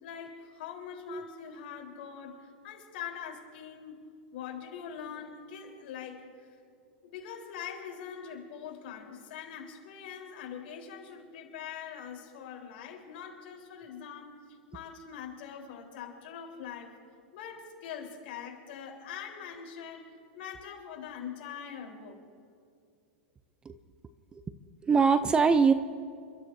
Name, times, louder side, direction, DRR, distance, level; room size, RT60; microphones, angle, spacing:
voice 1, 0.0-4.0 4.3-6.5 7.0-16.9 17.3-22.2, left 7 dB, 60° left, 1 dB, 3.7 m, -43 dB
voice 2, 24.8-25.7, right 5 dB, 15° right, 12 dB, 0.4 m, -22 dB
29.5 x 13.0 x 2.6 m, 2.4 s
supercardioid pair, 145°, 6 cm